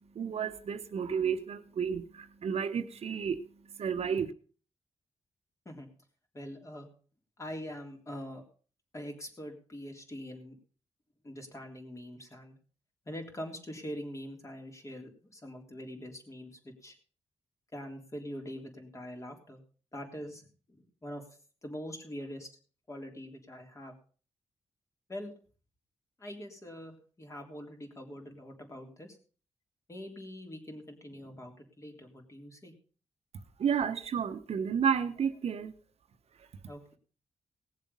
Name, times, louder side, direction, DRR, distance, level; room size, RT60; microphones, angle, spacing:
voice 1, 0.1-3.4 3.8-4.3 33.6-35.7, right 7 dB, 70° right, 8 dB, 1.1 m, -31 dB
voice 2, 6.3-6.9 7.4-8.4 8.9-10.5 11.2-12.6 13.0-16.9 17.7-19.6 19.9-21.2 21.6-22.5 22.9-23.9 25.1-25.3 26.2-29.2 29.9-32.7 36.7-37.0, equal, 25° left, 2 dB, 3.4 m, -43 dB
18.5 x 7.4 x 5.5 m, 0.41 s
cardioid pair, 95°, 11 cm